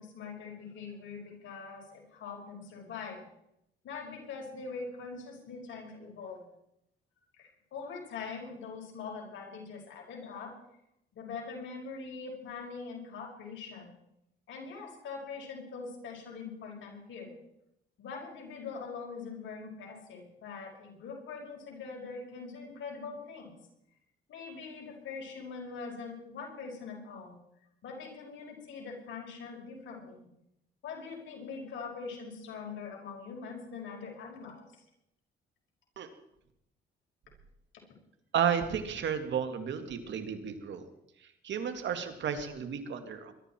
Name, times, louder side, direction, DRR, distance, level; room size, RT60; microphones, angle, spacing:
voice 1, 0.0-3.2 3.8-6.4 7.4-10.5 11.1-13.9 14.5-17.3 18.0-23.5 24.3-27.4 27.8-30.3 30.8-34.8, left 5 dB, 75° left, 0 dB, 5.5 m, -43 dB
voice 2, 38.3-40.8 41.4-43.3, right 8 dB, 65° right, 7 dB, 2.1 m, -32 dB
22.0 x 12.5 x 4.5 m, 0.81 s
cardioid pair, 90°, 20 cm